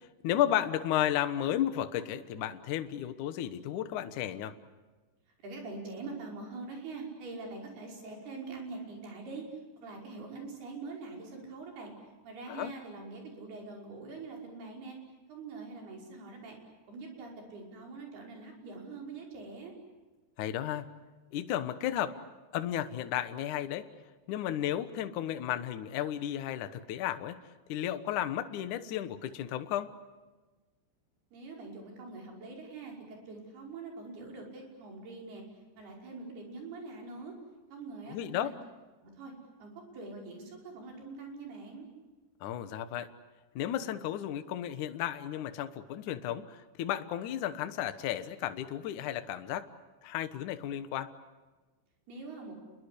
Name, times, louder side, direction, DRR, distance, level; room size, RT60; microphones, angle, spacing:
voice 1, 0.2-4.5 12.5-12.7 20.4-20.9 21.3-22.2 22.5-23.9 24.3-27.4 27.7-29.9 38.1-38.5 42.4-43.1 43.6-49.7 50.0-51.1, left 11 dB, 85° left, 10 dB, 1.7 m, -33 dB
voice 2, 5.4-9.4 9.8-11.9 12.2-15.0 15.3-16.6 16.9-19.7 31.3-35.4 35.8-37.3 37.7-38.5 39.0-39.3 39.6-41.9 52.1-52.5, right 3 dB, 55° right, 1 dB, 7.2 m, -44 dB
29.5 x 22.5 x 8.4 m, 1.2 s
omnidirectional pair, 5.5 m